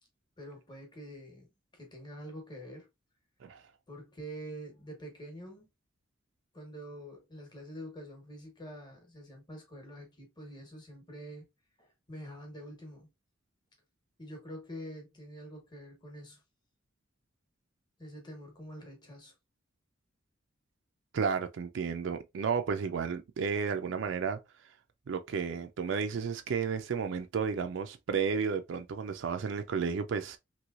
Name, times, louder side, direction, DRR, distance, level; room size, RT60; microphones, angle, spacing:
voice 1, 0.4-2.9 3.9-5.7 6.5-11.5 11.8-13.1 14.2-16.4 18.0-19.3, equal, 20° left, 1.1 m, -46 dB
voice 2, 21.1-24.4 25.1-30.4, right 6 dB, 65° right, 0.4 m, -32 dB
3.0 x 3.0 x 2.4 m
head